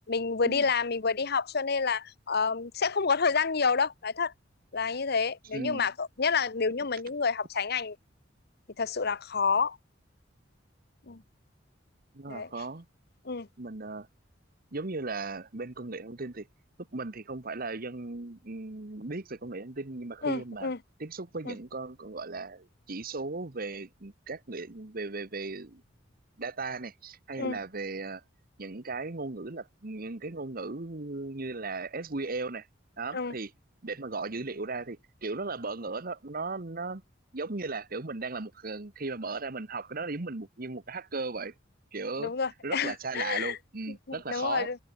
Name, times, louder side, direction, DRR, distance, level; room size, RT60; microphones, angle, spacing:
voice 1, 0.1-4.3 4.7-8.0 8.8-9.8 11.1-11.2 12.3-12.5 13.2-13.5 20.2-20.8 21.5-21.6 27.4-27.6 33.1-33.3 42.2-43.6 44.1-44.8, left 5 dB, 55° left, 1.0 m, -29 dB
voice 2, 5.5-5.9 12.1-12.9 13.6-14.1 14.7-16.5 16.8-20.7 21.0-25.8 26.4-28.2 28.6-32.7 33.0-33.5 33.8-37.0 37.3-41.5 41.9-42.3 42.6-44.7, right 3 dB, 50° right, 1.3 m, -37 dB
head